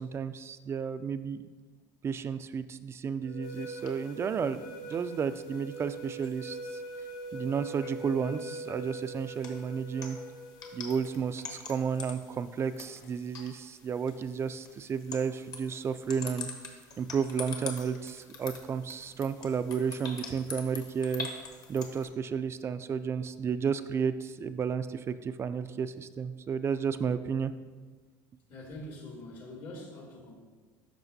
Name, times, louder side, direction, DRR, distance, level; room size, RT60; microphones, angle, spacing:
voice 1, 0.0-1.4 2.0-6.8 7.3-10.2 10.7-16.5 17.0-21.3 21.7-27.5, right 6 dB, 30° right, 12 dB, 0.3 m, -32 dB
sound 1, 3.2-11.0, right 1 dB, 80° left, 1.3 m, -42 dB
sound 2, 3.4-22.1, left 4 dB, 45° left, 1.2 m, -46 dB
voice 2, 28.5-30.3, left 1 dB, 60° left, -1 dB, 2.1 m, -44 dB
12.0 x 4.9 x 2.7 m, 1.3 s
supercardioid pair, 120°, 9 cm